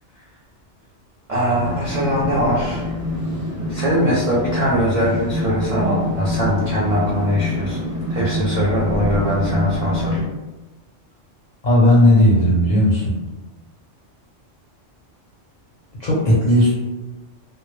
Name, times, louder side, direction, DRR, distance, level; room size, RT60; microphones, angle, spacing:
voice 1, 1.3-2.8 3.7-10.2, equal, 55° right, -7 dB, 0.4 m, -21 dB
sound 1, 1.5-10.2, left 1 dB, 15° right, 0.9 m, -26 dB
voice 2, 11.6-13.2 16.0-16.7, left 1 dB, 50° left, -6 dB, 0.5 m, -15 dB
2.0 x 2.0 x 3.0 m, 1.1 s
omnidirectional pair, 1.2 m